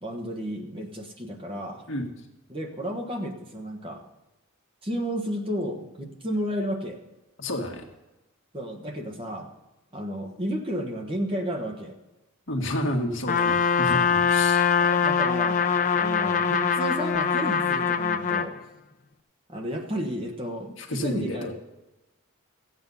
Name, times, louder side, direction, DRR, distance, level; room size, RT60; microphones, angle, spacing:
voice 1, 0.0-1.8 2.5-4.0 4.8-7.0 8.5-9.5 9.9-12.0 14.8-15.6 15.9-18.6 19.5-21.5, equal, 25° right, 2 dB, 1.3 m, -32 dB
voice 2, 7.4-7.9 12.5-14.6 20.8-21.5, left 1 dB, 65° left, 2 dB, 1.6 m, -30 dB
Trumpet, 13.3-18.5, left 6 dB, 35° left, 0.5 m, -23 dB
15.0 x 8.5 x 5.4 m, 1.0 s
head